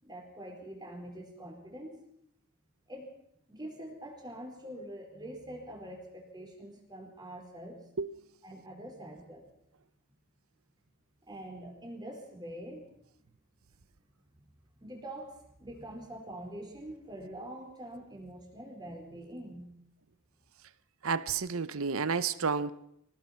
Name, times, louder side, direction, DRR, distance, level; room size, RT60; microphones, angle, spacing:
voice 1, 0.0-2.0 2.9-3.1 3.5-7.9 8.4-9.5 11.2-12.9 14.3-14.5 14.8-19.7, right 1 dB, 20° right, 4.5 m, -45 dB
voice 2, 21.0-22.7, right 5 dB, 75° right, 0.8 m, -30 dB
24.5 x 18.5 x 5.8 m
head